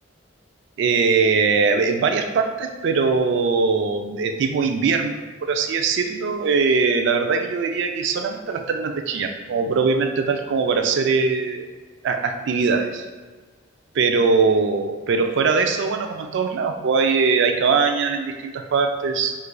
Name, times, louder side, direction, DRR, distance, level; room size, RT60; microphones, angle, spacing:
voice 1, 0.8-11.7 12.0-13.0 13.9-19.4, right 4 dB, 65° right, 5 dB, 0.3 m, -21 dB
4.3 x 2.4 x 2.2 m, 1.4 s
head